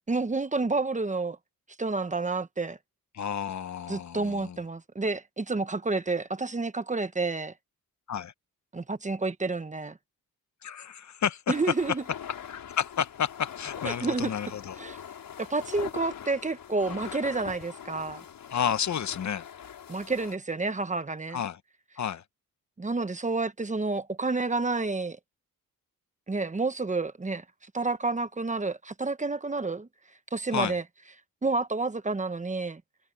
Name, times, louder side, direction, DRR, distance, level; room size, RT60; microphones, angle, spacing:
voice 1, 0.1-1.4 1.8-2.8 3.9-7.5 8.7-10.0 11.5-12.0 13.8-14.3 14.8-15.0 15.4-18.2 19.9-21.4 22.8-25.2 26.3-29.9 30.3-30.8 31.4-32.8, right 3 dB, 20° right, 1.2 m, -29 dB
voice 2, 3.1-4.6 8.1-8.3 10.6-11.4 12.5-14.8 18.5-19.5 21.3-21.6 22.0-22.2 30.5-30.8, left 8 dB, 55° left, 1.0 m, -31 dB
sound 1, 11.5-20.4, left 9 dB, 70° left, 5.1 m, -42 dB
cardioid pair, 100°, 35 cm